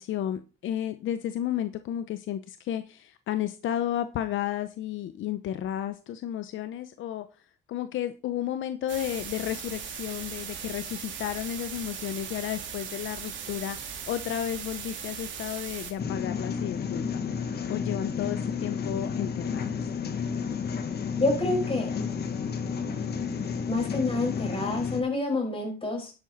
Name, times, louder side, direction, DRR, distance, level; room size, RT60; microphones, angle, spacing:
voice 1, 0.0-7.3 7.7-17.2 17.7-19.8, left 11 dB, 75° left, 10 dB, 0.8 m, -32 dB
sound 1, 8.9-15.9, right 7 dB, 70° right, 2.7 m, -38 dB
sound 2, 16.0-25.0, left 6 dB, 55° left, 1.8 m, -31 dB
voice 2, 21.2-21.9 22.8-23.3 23.7-26.1, left 2 dB, 30° left, 1 dB, 6.3 m, -28 dB
11.0 x 8.0 x 4.0 m, 0.33 s
cardioid pair, 90°, 20 cm